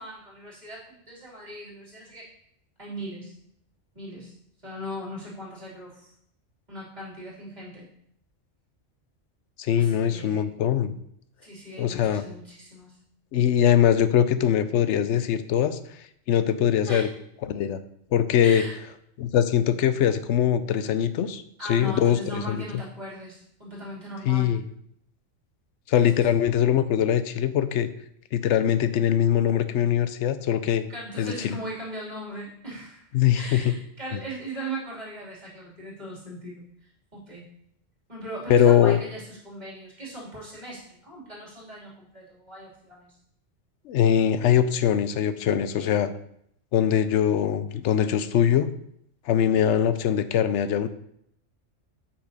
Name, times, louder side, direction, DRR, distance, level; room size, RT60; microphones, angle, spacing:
voice 1, 0.0-2.3 2.8-3.4 3.9-4.3 4.6-6.1 6.7-7.9 9.7-10.4 11.4-13.0 16.8-17.0 18.4-18.7 21.6-24.5 30.9-33.1 33.3-37.5 38.1-43.1 45.8-46.0, right 1 dB, 35° right, -6 dB, 3.1 m, -39 dB
voice 2, 9.6-11.0 11.8-12.2 13.3-15.8 16.3-17.1 17.5-17.8 18.1-18.6 19.2-21.4 21.7-22.8 24.3-24.6 25.9-27.9 28.3-30.8 31.2-31.5 33.1-33.7 34.1-34.2 38.5-39.0 43.9-46.1 46.7-48.7 49.3-50.9, left 9 dB, 70° left, 12 dB, 0.9 m, -22 dB
8.3 x 5.9 x 4.1 m, 0.71 s
omnidirectional pair, 1.3 m